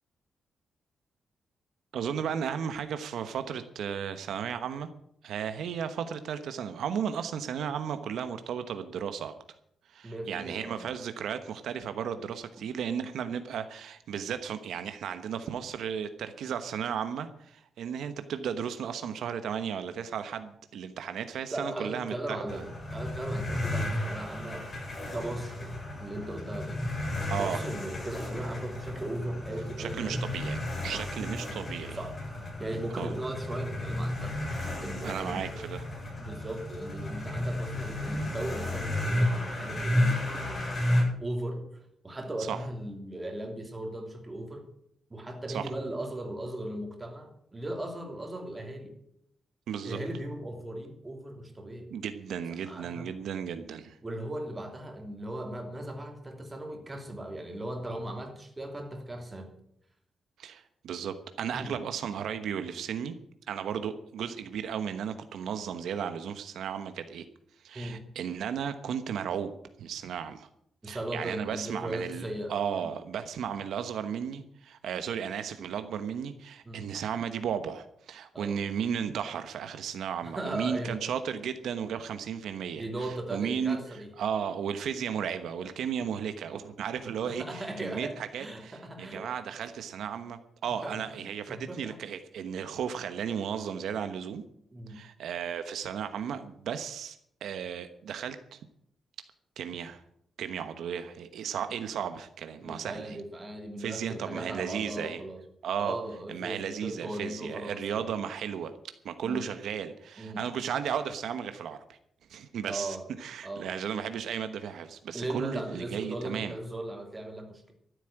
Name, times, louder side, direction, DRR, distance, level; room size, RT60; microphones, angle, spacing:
voice 1, 1.9-4.9 5.2-9.3 9.9-22.6 27.3-27.6 29.8-32.0 32.9-33.2 35.0-35.8 42.4-42.6 45.5-45.7 49.7-50.0 51.9-54.0 60.4-63.2 63.5-67.2 67.6-69.5 69.8-70.5 70.8-83.8 84.2-94.4 94.9-98.6 99.6-100.0 100.4-103.2 103.8-105.2 105.6-106.0 106.3-108.7 109.0-112.0 112.3-116.5, right 8 dB, 80° right, 10 dB, 1.1 m, -34 dB
voice 2, 10.0-10.9 21.5-24.7 25.1-26.8 27.3-30.3 30.9-31.3 31.9-32.2 32.6-34.4 34.8-35.6 36.2-40.3 41.2-44.7 45.1-48.9 49.8-51.9 52.6-53.1 54.0-59.5 61.5-61.8 67.7-68.0 70.8-72.5 72.8-72.9 76.6-76.8 78.3-78.6 80.2-81.0 82.7-84.1 87.2-89.3 90.8-91.2 91.5-92.0 94.7-95.0 102.6-105.4 105.8-108.1 109.2-109.5 110.2-110.5 112.6-113.1 113.4-113.7 115.1-117.7, right 1 dB, 15° right, 3 dB, 3.0 m, -38 dB
sound 1, 22.5-41.0, left 1 dB, 30° left, 7.9 m, -33 dB
13.5 x 8.4 x 9.0 m, 0.71 s
wide cardioid pair, 140°, 0 cm